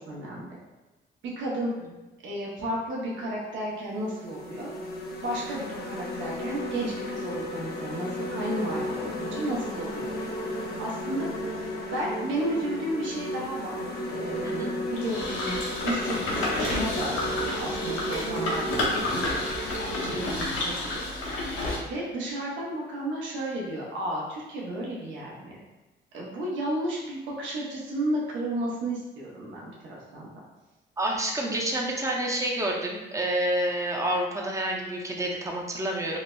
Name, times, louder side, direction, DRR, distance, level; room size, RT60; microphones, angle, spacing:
voice 1, 0.1-0.5 1.2-1.7 2.2-4.8 5.2-10.3 10.8-11.3 11.5-11.7 11.9-13.8 14.1-15.5 15.8-17.2 17.6-18.8 19.1-19.5 20.0-21.1 21.8-25.6 26.1-30.4, right 1 dB, 75° right, -4 dB, 0.7 m, -33 dB
sound 1, 3.2-3.4 4.0-20.1, left 1 dB, 50° left, 0.5 m, -34 dB
sound 2, 15.0-21.8, left 2 dB, 85° left, 0.8 m, -30 dB
voice 2, 31.0-36.2, right 1 dB, 15° right, -1 dB, 0.5 m, -28 dB
3.9 x 2.0 x 2.2 m, 1.1 s
cardioid pair, 90°, 20 cm